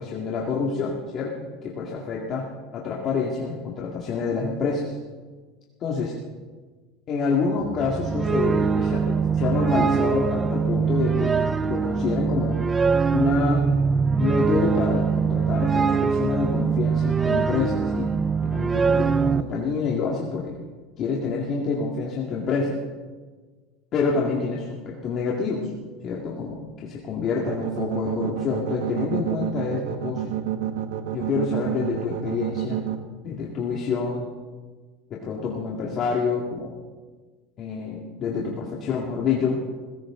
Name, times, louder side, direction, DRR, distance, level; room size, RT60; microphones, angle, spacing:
voice 1, 0.0-2.5 2.7-5.0 5.8-6.1 7.1-12.6 13.1-13.6 14.2-18.1 18.4-20.6 21.0-22.8 23.9-25.7 26.0-30.4 31.1-32.8 33.2-34.3 35.1-36.7 37.6-39.6, left 5 dB, 40° left, -3 dB, 2.2 m, -27 dB
sound 1, 7.6-19.4, right 5 dB, 15° right, 0.5 m, -22 dB
sound 2, 27.5-33.0, right 12 dB, 90° right, 1.5 m, -28 dB
19.5 x 17.0 x 3.8 m, 1.4 s
supercardioid pair, 135°, 0 cm